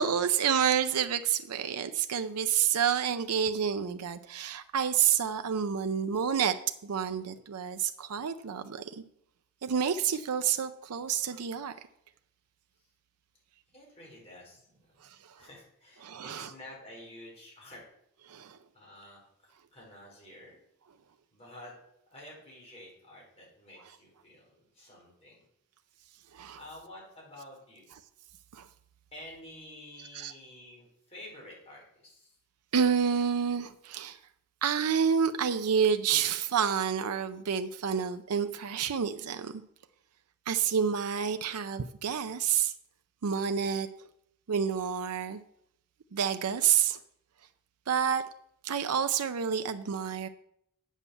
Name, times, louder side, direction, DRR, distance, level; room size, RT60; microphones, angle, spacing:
voice 1, 0.0-6.6 6.8-9.0 9.6-11.7 16.0-16.5 18.3-18.6 26.3-26.6 28.5-28.7 30.1-30.3 32.7-34.2 34.6-39.6 40.5-42.7 43.2-43.9 44.5-45.4 46.1-47.0 47.9-48.2 48.6-50.3, right 7 dB, 90° right, 9 dB, 0.5 m, -29 dB
voice 2, 13.7-14.6 15.0-15.1 15.4-17.8 18.7-20.6 21.3-21.7 22.1-25.4 26.5-27.9 29.1-32.4, left 1 dB, 30° left, -3 dB, 4.5 m, -50 dB
8.2 x 7.3 x 6.9 m, 0.74 s
head